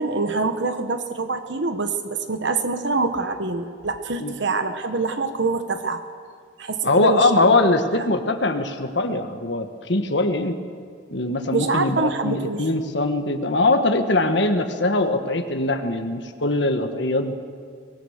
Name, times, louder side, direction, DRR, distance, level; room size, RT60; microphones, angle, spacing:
voice 1, 0.0-6.0 6.6-7.5 7.9-8.0 11.5-12.7, right 3 dB, 70° right, 8 dB, 1.2 m, -25 dB
voice 2, 6.8-10.6 11.1-17.3, left 2 dB, 65° left, 6 dB, 1.5 m, -21 dB
24.0 x 19.0 x 6.6 m, 2.1 s
head